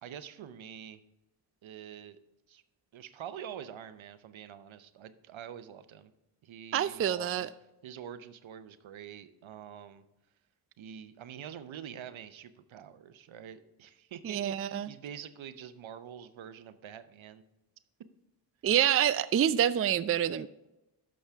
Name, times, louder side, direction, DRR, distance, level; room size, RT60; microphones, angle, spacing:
voice 1, 0.0-1.0 1.6-2.2 2.5-2.6 2.9-6.1 6.4-7.5 7.8-10.0 10.8-17.4, right 9 dB, 70° right, 0.7 m, -46 dB
voice 2, 6.7-7.5 14.2-14.9 18.6-20.5, right 10 dB, 30° right, 0.4 m, -27 dB
11.5 x 6.4 x 3.5 m
cardioid pair, 45°, 48 cm